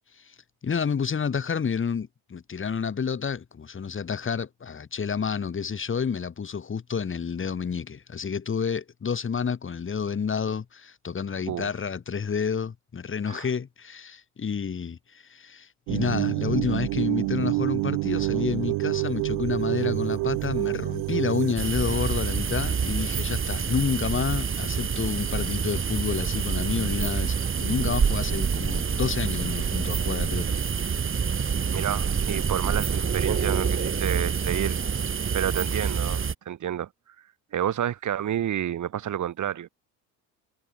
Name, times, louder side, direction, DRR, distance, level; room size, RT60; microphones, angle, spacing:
voice 1, 0.6-30.6, left 6 dB, 30° left, 4.3 m, -29 dB
sound 1, 15.9-21.5, right 23 dB, 80° right, 3.1 m, -27 dB
sound 2, 21.6-36.3, right 6 dB, 35° right, 5.2 m, -27 dB
voice 2, 31.7-34.8 35.3-36.9 37.5-39.7, right 10 dB, 50° right, 4.1 m, -29 dB
cardioid pair, 100°, 37 cm